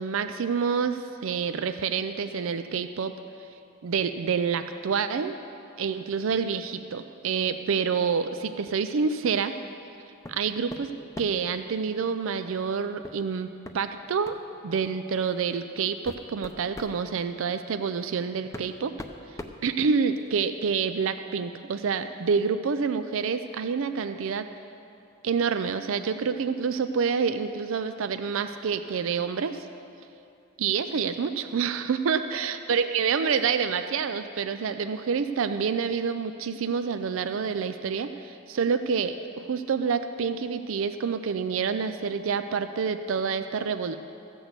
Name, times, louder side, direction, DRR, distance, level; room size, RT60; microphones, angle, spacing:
voice 1, 0.0-3.1 3.8-5.3 5.8-9.5 10.3-10.9 11.2-13.5 13.7-14.4 14.6-18.9 19.6-24.5 25.2-29.6 30.6-39.2 39.5-43.9, right 6 dB, 65° right, 9 dB, 0.4 m, -27 dB
sound 1, 10.2-10.4 10.7-11.5 13.0-13.2 13.6-13.8 14.2-14.5 15.3-15.4 15.9-17.0 18.0-18.1 18.5-20.3, left 1 dB, 15° left, 0.6 m, -41 dB
14.5 x 6.2 x 8.0 m, 2.6 s
head